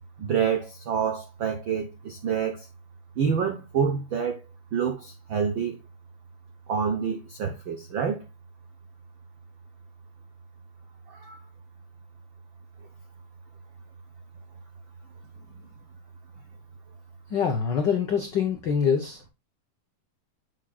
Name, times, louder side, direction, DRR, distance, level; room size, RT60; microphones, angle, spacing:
voice 1, 0.2-2.7 3.2-4.4 4.7-5.8 6.7-8.2 11.1-11.4, right 7 dB, 90° right, 1.0 m, -27 dB
voice 2, 17.3-19.2, left 7 dB, 90° left, 0.9 m, -25 dB
7.3 x 6.5 x 2.4 m
omnidirectional pair, 3.5 m